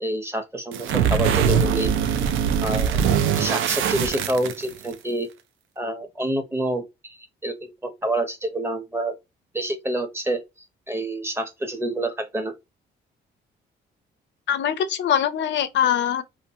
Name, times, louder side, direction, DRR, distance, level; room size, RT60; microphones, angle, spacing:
voice 1, 0.0-1.9 2.6-3.0 3.3-5.3 5.8-7.2 7.4-9.1 9.5-10.4 10.9-12.5, right 1 dB, 10° right, 0.6 m, -27 dB
sound 1, 0.7-4.9, right 8 dB, 80° right, 0.4 m, -22 dB
voice 2, 14.5-16.2, left 9 dB, 65° left, 0.5 m, -22 dB
2.5 x 2.5 x 2.7 m
cardioid pair, 90°, 20 cm